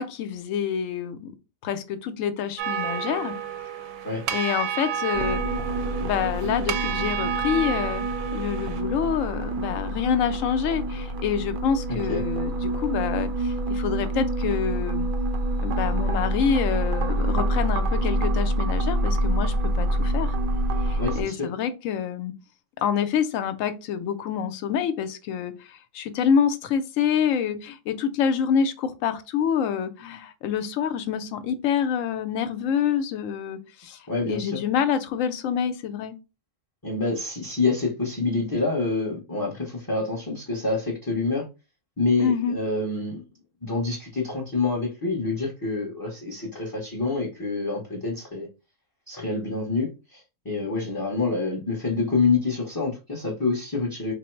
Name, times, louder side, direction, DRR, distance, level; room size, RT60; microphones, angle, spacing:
voice 1, 0.0-1.3 1.6-3.3 4.3-5.4 6.0-8.1 8.3-15.1 15.6-20.3 20.8-22.3 22.8-34.0 34.3-36.2 42.2-42.5, left 7 dB, 75° left, 10 dB, 0.9 m, -27 dB
sound 1, 2.6-8.8, right 9 dB, 80° right, 1.0 m, -31 dB
sound 2, 5.1-21.2, right 1 dB, 65° right, 0.5 m, -26 dB
voice 2, 11.9-12.2 21.0-21.5 34.1-34.6 36.8-41.5 42.0-43.2 43.6-48.5 49.1-54.1, left 3 dB, 20° left, -3 dB, 0.6 m, -27 dB
3.7 x 2.0 x 4.4 m, 0.28 s
omnidirectional pair, 1.4 m